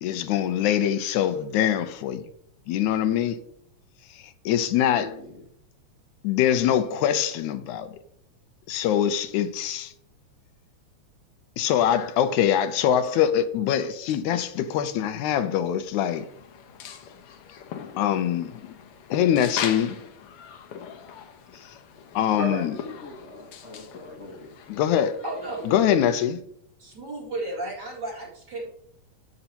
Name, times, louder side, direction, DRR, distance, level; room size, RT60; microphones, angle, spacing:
voice 1, 0.0-2.2 2.7-3.4 4.5-5.1 6.2-7.9 8.7-9.9 11.6-16.3 18.0-18.7 19.1-20.0 22.2-22.7 24.7-25.1 25.7-26.4, left 10 dB, 85° left, 2.1 m, -23 dB
voice 2, 4.9-5.5 22.4-24.5, left 1 dB, 40° left, 1.0 m, -37 dB
sound 1, 16.0-26.0, left 8 dB, 70° left, 1.4 m, -40 dB
voice 3, 25.2-25.8 26.8-28.7, right 2 dB, 40° right, 2.6 m, -34 dB
11.0 x 7.9 x 2.9 m
omnidirectional pair, 3.3 m